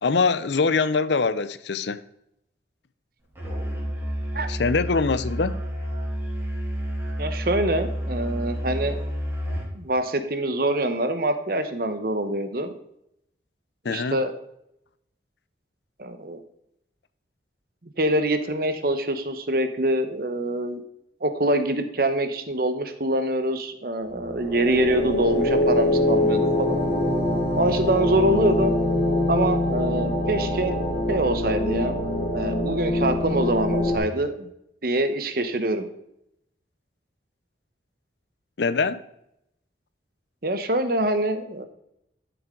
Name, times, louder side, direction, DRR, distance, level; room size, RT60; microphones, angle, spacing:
voice 1, 0.0-2.0 4.5-5.6 13.8-14.2 38.6-39.0, left 4 dB, 70° left, 15 dB, 0.6 m, -23 dB
Musical instrument, 3.4-9.7, equal, 15° right, 3.2 m, -30 dB
voice 2, 7.2-9.0 9.7-12.7 13.9-14.3 16.0-16.4 18.0-20.8 21.2-26.8 27.6-28.7 29.3-30.8 31.1-31.9 32.3-34.5 34.8-35.9 40.4-41.7, right 1 dB, 50° right, 9 dB, 1.0 m, -25 dB
sound 1, 24.1-34.0, left 1 dB, 30° left, 2.7 m, -24 dB
12.0 x 7.1 x 3.8 m, 0.79 s
head